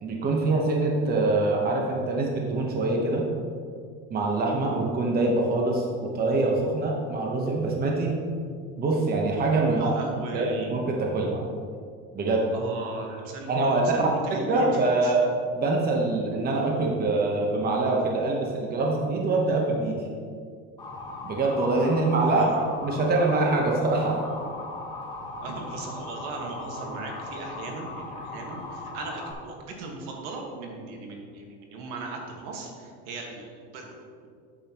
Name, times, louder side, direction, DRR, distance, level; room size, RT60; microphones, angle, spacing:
voice 1, 0.0-3.2 4.1-8.2 8.8-9.9 10.3-11.4 12.1-12.4 13.5-14.0 14.5-15.3 15.6-20.0 21.2-22.5 22.8-24.2, right 2 dB, 30° right, 0 dB, 1.1 m, -24 dB
voice 2, 9.7-10.7 12.5-15.1 22.2-22.7 25.4-33.9, right 3 dB, 70° right, 1 dB, 1.7 m, -37 dB
Motor vehicle (road) / Siren, 20.8-29.3, left 2 dB, 15° left, 1.6 m, -38 dB
8.6 x 8.0 x 3.0 m, 2.2 s
supercardioid pair, 120°, 32 cm